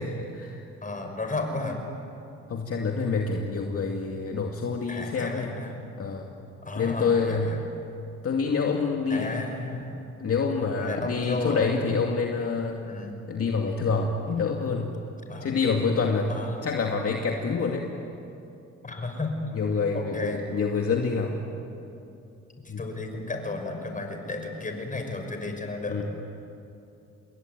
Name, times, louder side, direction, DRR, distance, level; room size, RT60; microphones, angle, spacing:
voice 1, 0.0-0.6 2.5-5.5 6.0-6.3 6.8-7.6 8.2-9.3 10.2-12.8 13.3-14.9 15.4-16.3 16.6-17.9 19.5-21.4 22.7-22.8 25.9-26.0, left 5 dB, 50° left, 1 dB, 2.3 m, -27 dB
voice 2, 0.8-1.8 4.9-5.7 6.6-7.6 9.1-10.1 10.8-12.0 12.8-13.2 15.3-15.6 16.3-16.7 18.8-19.4 19.9-20.4 22.8-26.0, left 2 dB, 25° left, 4 dB, 6.0 m, -33 dB
28.0 x 21.5 x 9.5 m, 2.8 s
cardioid pair, 90°, 30 cm